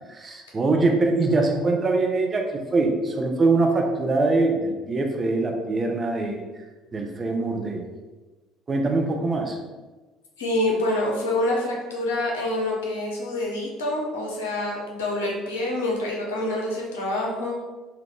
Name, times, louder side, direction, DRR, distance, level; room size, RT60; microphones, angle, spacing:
voice 1, 0.1-6.4 6.9-7.9 8.7-9.6, right 3 dB, 30° right, 2 dB, 0.6 m, -23 dB
voice 2, 10.4-17.6, left 1 dB, 70° left, -2 dB, 0.7 m, -26 dB
3.5 x 2.4 x 3.2 m, 1.2 s
figure-of-eight pair, 55°, 0 cm